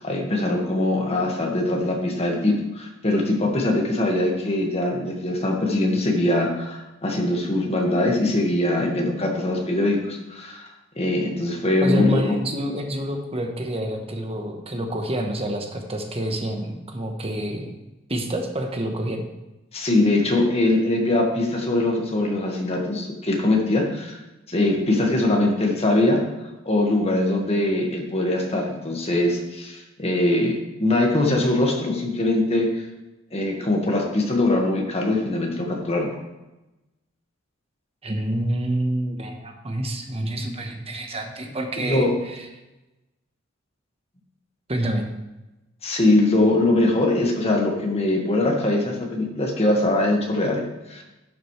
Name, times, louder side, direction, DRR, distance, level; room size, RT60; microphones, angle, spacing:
voice 1, 0.0-10.7 11.0-12.4 19.7-24.2 24.5-26.2 26.6-32.8 33.3-36.1 41.8-42.2 45.8-51.0, left 2 dB, 30° left, 0 dB, 1.7 m, -22 dB
voice 2, 11.8-17.7 18.1-19.2 38.0-42.5 44.7-45.1, right 1 dB, 30° right, 4 dB, 1.1 m, -28 dB
11.5 x 7.6 x 3.2 m, 1.0 s
head